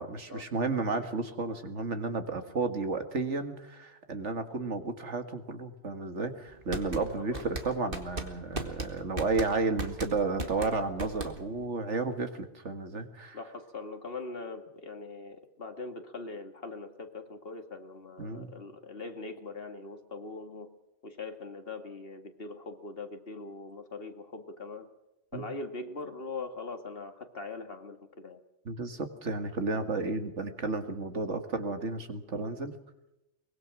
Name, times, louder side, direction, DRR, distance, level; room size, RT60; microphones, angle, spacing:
voice 1, 0.0-13.4 18.2-18.6 25.3-25.4 28.7-32.8, right 3 dB, 80° right, 7 dB, 2.2 m, -32 dB
sound 1, 6.5-11.7, right 2 dB, 50° right, 2.3 m, -37 dB
voice 2, 7.1-7.6 13.3-20.7 21.0-24.9 25.3-28.4, left 3 dB, 55° left, 6 dB, 2.2 m, -41 dB
23.5 x 21.0 x 6.2 m, 0.90 s
omnidirectional pair, 1.2 m